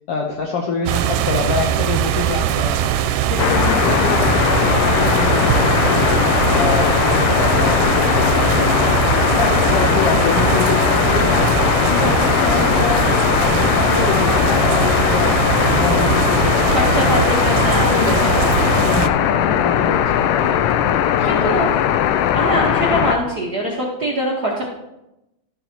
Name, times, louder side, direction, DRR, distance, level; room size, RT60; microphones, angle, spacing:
voice 1, 0.1-2.7 3.3-6.1 6.5-9.0 9.4-11.5 11.9-15.4 15.7-17.5 17.9-18.3 18.7-20.6 21.2-21.8, left 4 dB, 75° left, 1 dB, 1.4 m, -26 dB
sound 1, 0.9-19.1, right 10 dB, 90° right, 2.1 m, -21 dB
sound 2, 3.4-23.2, left 10 dB, 90° left, 2.2 m, -18 dB
voice 2, 16.7-18.7 21.3-21.7 22.3-24.7, equal, 50° right, -4 dB, 1.2 m, -23 dB
13.0 x 7.5 x 2.9 m, 0.91 s
omnidirectional pair, 3.7 m